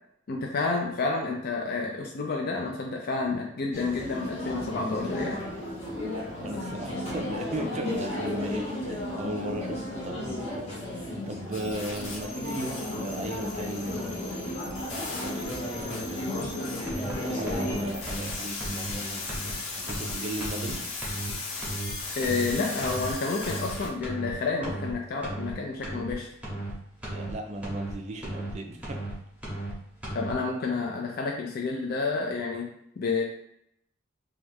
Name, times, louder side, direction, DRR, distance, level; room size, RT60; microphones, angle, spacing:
voice 1, 0.3-5.4 22.2-26.3 30.1-32.7 33.0-33.2, left 3 dB, 50° left, 0 dB, 0.4 m, -30 dB
sound 1, 3.7-17.9, left 1 dB, 35° left, 0.9 m, -34 dB
voice 2, 6.4-15.6 15.8-16.6 17.2-20.9 27.1-29.1, right 1 dB, 35° right, 3 dB, 0.4 m, -37 dB
sound 2, 11.5-23.9, left 3 dB, 90° left, 0.9 m, -38 dB
sound 3, 16.9-17.1 17.5-17.7 18.1-18.3 18.6-18.9 19.3-19.5 19.9-20.1 20.4-20.7 21.0-21.3 21.6-21.9 22.2-22.5 22.8-23.1 23.4-23.7 24.0-24.3 24.6-24.9 25.2-25.5 25.8-26.1 26.4-26.7 27.0-27.3 27.6-27.9 28.2-28.5 28.8-29.1 29.4-29.7 30.0-30.3, right 1 dB, 5° right, 0.9 m, -35 dB
3.0 x 2.3 x 3.4 m, 0.75 s
head